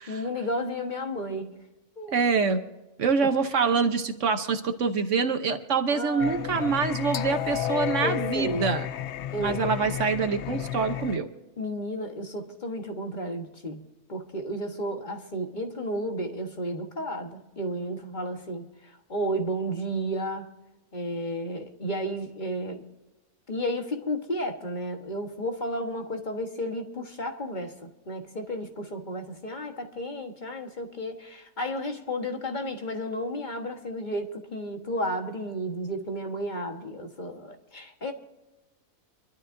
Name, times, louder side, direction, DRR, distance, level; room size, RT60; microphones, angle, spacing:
voice 1, 0.0-1.6 2.0-2.2 5.9-6.7 8.0-8.7 9.3-9.6 11.6-13.8 14.1-20.5 20.9-22.8 23.5-38.1, equal, 35° left, 4 dB, 1.5 m, -32 dB
voice 2, 2.1-2.6 3.0-8.9 9.4-11.3, right 5 dB, 60° right, 7 dB, 1.2 m, -25 dB
Singing, 6.2-11.2, left 11 dB, 60° left, 0.8 m, -32 dB
25.5 x 12.5 x 2.7 m, 1.0 s
omnidirectional pair, 1.5 m